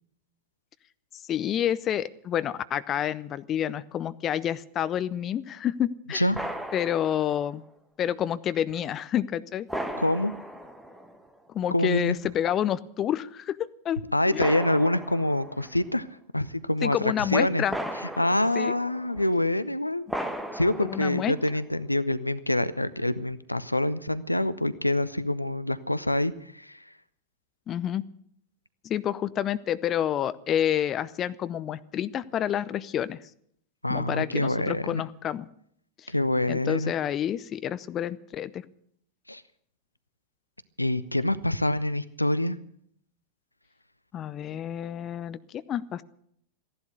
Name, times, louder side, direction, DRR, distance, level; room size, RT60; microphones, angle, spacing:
voice 1, 1.3-6.2 6.7-7.6 8.0-9.7 11.5-14.0 14.3-14.5 16.8-17.7 18.6-18.7 20.8-21.3 27.7-28.0 28.8-33.2 33.9-35.5 36.0-36.1 36.5-38.6 44.1-46.0, left 10 dB, 30° left, 16 dB, 0.6 m, -29 dB
voice 2, 6.1-6.4 10.0-10.3 11.7-12.2 14.1-16.1 16.3-17.6 18.2-20.1 20.5-26.8 33.8-35.0 36.1-36.9 39.3-39.4 40.8-42.6, left 1 dB, 85° left, 16 dB, 0.6 m, -26 dB
sound 1, 6.3-7.5 8.7-8.8 9.7-11.4 12.2-12.3 14.4-15.8 17.7-19.4 20.1-21.6, equal, 5° right, 1.5 m, -36 dB
15.0 x 11.0 x 8.0 m, 0.67 s
figure-of-eight pair, 90°, 0 cm